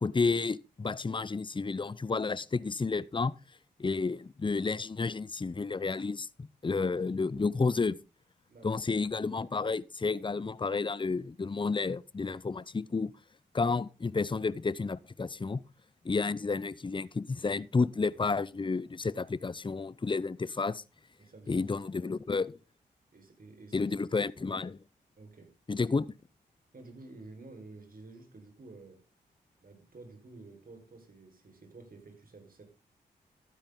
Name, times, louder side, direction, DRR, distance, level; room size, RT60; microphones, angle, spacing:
voice 1, 0.0-3.3 3.8-8.0 8.6-13.1 13.5-15.6 16.0-20.8 21.5-22.5 23.7-24.8 25.7-26.1, left 4 dB, 25° left, 0.7 m, -31 dB
voice 2, 8.5-8.9 21.2-21.8 23.1-24.0 25.2-25.6 26.7-29.1 29.6-32.6, right 3 dB, 50° right, 4.6 m, -51 dB
12.5 x 10.0 x 3.8 m
supercardioid pair, 40°, 19 cm